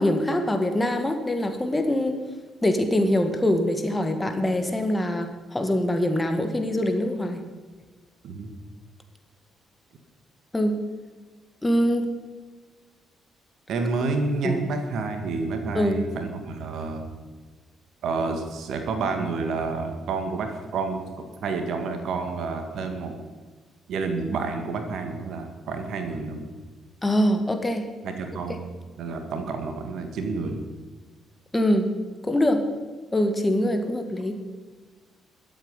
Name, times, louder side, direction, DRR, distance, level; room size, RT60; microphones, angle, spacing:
voice 1, 0.0-2.2 2.6-7.4 10.5-10.8 11.6-12.1 14.4-14.6 15.7-16.0 27.0-27.8 31.5-31.9 32.2-32.6 33.1-34.4, left 1 dB, 15° left, 6 dB, 2.1 m, -23 dB
voice 2, 13.7-17.1 18.0-23.1 23.9-26.5 28.0-28.6 29.0-30.6, right 4 dB, 55° right, 6 dB, 1.8 m, -29 dB
21.5 x 8.2 x 5.5 m, 1.3 s
figure-of-eight pair, 45°, 0 cm